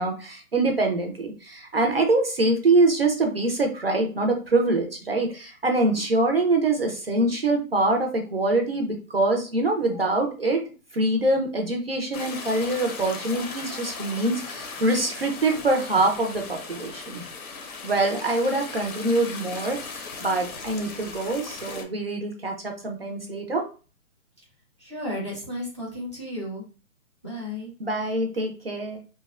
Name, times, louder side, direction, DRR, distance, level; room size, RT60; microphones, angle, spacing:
voice 1, 0.0-10.6 10.9-17.2 17.8-23.6 27.8-29.0, right 2 dB, 45° right, 3 dB, 0.4 m, -24 dB
sound 1, 12.1-21.8, left 4 dB, 90° left, 0.8 m, -38 dB
voice 2, 24.8-26.7 27.2-27.7, left 1 dB, 20° left, -4 dB, 0.6 m, -33 dB
2.7 x 2.1 x 2.3 m, 0.36 s
hypercardioid pair, 170°, 42 cm